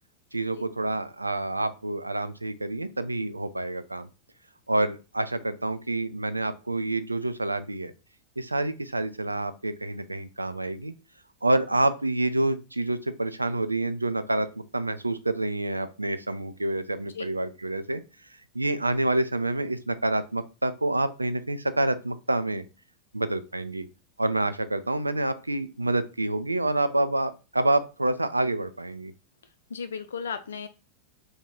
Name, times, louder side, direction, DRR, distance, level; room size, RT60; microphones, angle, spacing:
voice 1, 0.3-4.1 4.7-7.9 8.4-10.9 11.4-14.5 14.7-18.0 18.5-22.6 23.1-23.9 24.2-29.1, right 2 dB, 85° right, 12 dB, 0.3 m, -27 dB
voice 2, 29.7-30.7, left 6 dB, 65° left, 10 dB, 0.4 m, -35 dB
3.0 x 2.3 x 3.8 m, 0.30 s
figure-of-eight pair, 90°, 0 cm